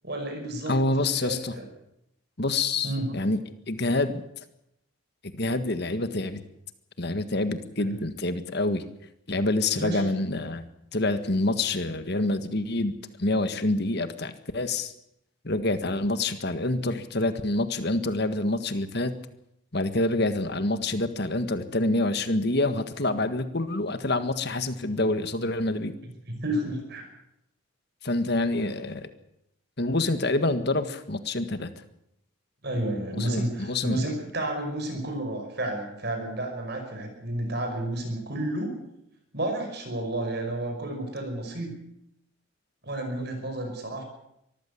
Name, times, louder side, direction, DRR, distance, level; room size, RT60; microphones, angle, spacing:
voice 1, 0.0-0.7 1.1-1.6 2.8-3.1 7.8-8.0 9.8-10.1 26.3-27.1 32.6-38.7 39.3-41.8 42.8-44.0, right 1 dB, 50° right, 4 dB, 5.5 m, -31 dB
voice 2, 0.7-1.5 2.4-4.1 5.3-6.4 7.0-8.8 9.3-10.6 10.9-12.9 13.2-14.9 15.4-19.1 19.7-26.0 28.0-29.1 29.8-31.7 33.1-34.0, left 2 dB, 50° left, 10 dB, 1.7 m, -27 dB
24.0 x 14.5 x 8.5 m, 0.80 s
head